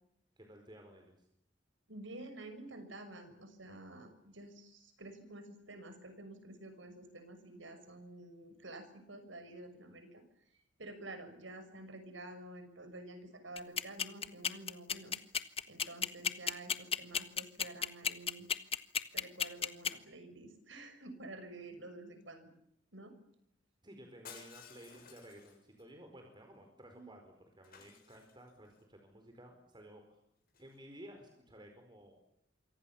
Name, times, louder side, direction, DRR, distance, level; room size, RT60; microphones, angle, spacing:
voice 1, 0.4-1.3 23.8-30.2 30.6-32.2, right 1 dB, 25° right, 4 dB, 4.7 m, -55 dB
voice 2, 1.9-10.2 10.8-15.2 15.7-18.5 19.1-22.5 22.9-23.1 27.0-27.1, right 2 dB, 90° right, 9 dB, 6.3 m, -50 dB
sound 1, 13.6-19.9, left 7 dB, 30° left, 1.4 m, -32 dB
Shatter, 24.2-25.8 27.6-28.7 30.5-30.8, left 7 dB, 50° left, 7.3 m, -55 dB
27.5 x 24.5 x 7.2 m, 0.74 s
head